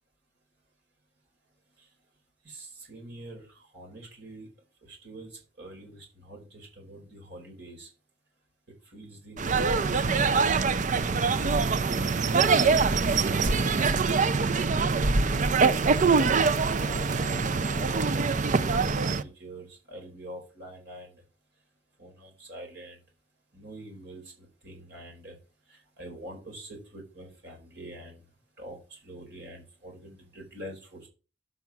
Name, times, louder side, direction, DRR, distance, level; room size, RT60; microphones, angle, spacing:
voice 1, 2.4-4.5 4.8-7.9 8.8-10.5 14.4-15.4 15.7-21.2 22.0-23.0 23.5-25.4 25.7-28.2 28.6-31.1, right 1 dB, 65° right, 0 dB, 4.7 m, -45 dB
sound 1, 9.4-19.2, right 4 dB, 45° right, 0.6 m, -24 dB
8.1 x 6.0 x 6.0 m, 0.34 s
head